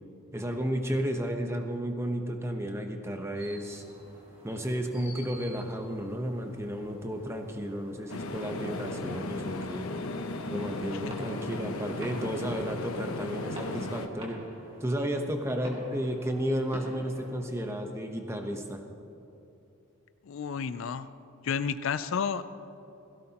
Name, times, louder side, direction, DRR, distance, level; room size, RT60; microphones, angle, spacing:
voice 1, 0.3-3.8 4.4-9.9 10.5-14.4 14.8-18.8, equal, 10° right, 4 dB, 0.9 m, -33 dB
sound 1, 3.4-17.4, equal, 30° right, 2.5 m, -49 dB
sound 2, 8.1-14.1, left 2 dB, 85° left, 0.9 m, -36 dB
voice 2, 20.3-21.1 21.4-22.4, left 6 dB, 65° left, 13 dB, 0.4 m, -31 dB
17.0 x 16.5 x 2.9 m, 2.9 s
head